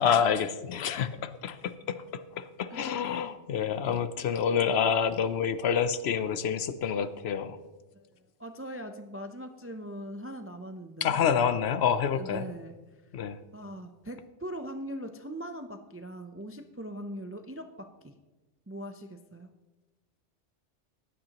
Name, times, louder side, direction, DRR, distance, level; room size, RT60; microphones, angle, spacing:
voice 1, 0.0-7.6 11.0-12.4 13.1-13.4, left 7 dB, 65° left, 13 dB, 0.8 m, -28 dB
voice 2, 2.7-3.1 3.8-4.0 8.1-11.2 12.1-12.8 13.5-18.1 18.7-19.5, equal, 20° right, 7 dB, 0.3 m, -41 dB
15.5 x 10.5 x 2.9 m, 1.1 s
omnidirectional pair, 1.2 m